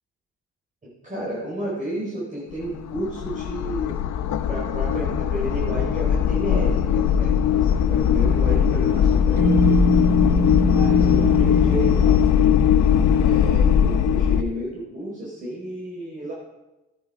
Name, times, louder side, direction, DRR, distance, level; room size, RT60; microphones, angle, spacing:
voice 1, 0.8-4.0 4.5-9.8 10.6-12.6 13.2-16.3, right 1 dB, 25° right, -6 dB, 4.5 m, -32 dB
sound 1, 2.5-14.4, left 8 dB, 70° left, 0.9 m, -19 dB
sound 2, 9.4-13.2, right 2 dB, 85° right, 1.8 m, -25 dB
14.0 x 9.2 x 4.9 m, 1.0 s
cardioid pair, 90°, 30 cm